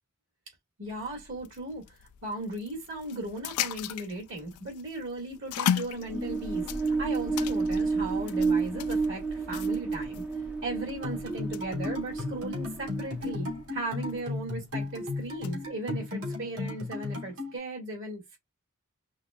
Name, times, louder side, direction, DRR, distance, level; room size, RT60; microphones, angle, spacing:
sound 1, 0.8-15.7, left 9 dB, 80° left, 0.4 m, -39 dB
voice 1, 0.8-2.0 2.2-10.2 10.6-18.4, right 2 dB, 60° right, 2.1 m, -37 dB
sound 2, 5.9-13.6, right 4 dB, 5° right, 0.5 m, -31 dB
sound 3, 11.0-17.6, left 3 dB, 75° right, 2.7 m, -35 dB
5.6 x 2.2 x 2.4 m
head